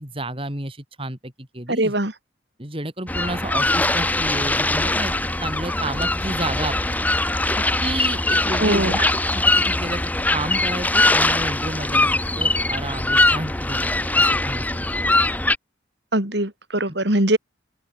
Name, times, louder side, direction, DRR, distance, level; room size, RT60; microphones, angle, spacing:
voice 1, 0.0-1.9 2.6-5.1 5.4-7.0 7.6-10.0 10.3-13.9 14.1-14.9 16.9-17.0, right 1 dB, 30° right, 4.1 m, -31 dB
voice 2, 1.7-2.1 8.6-9.0 16.1-17.4, right 1 dB, 60° right, 4.1 m, -21 dB
sound 1, 3.1-15.6, left 2 dB, 10° left, 0.8 m, -21 dB
open air
head